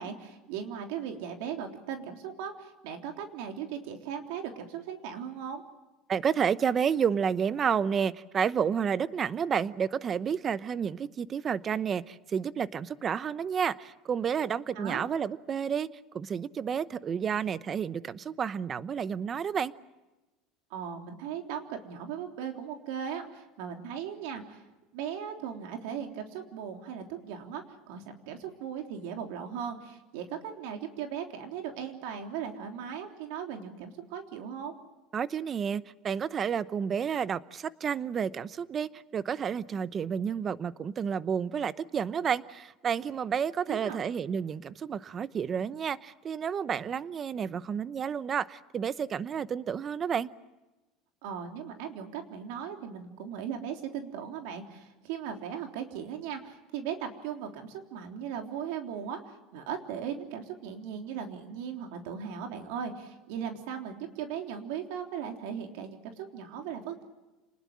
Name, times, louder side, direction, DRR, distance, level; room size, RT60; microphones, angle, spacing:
voice 1, 0.0-5.6 14.8-15.1 20.7-24.6 24.9-34.7 43.7-44.0 51.2-67.0, right 8 dB, 75° right, 3.5 m, -38 dB
voice 2, 6.1-15.9 16.1-19.7 35.1-50.3, right 7 dB, 25° right, 0.8 m, -30 dB
29.0 x 20.0 x 7.5 m
cardioid pair, 150°, 0 cm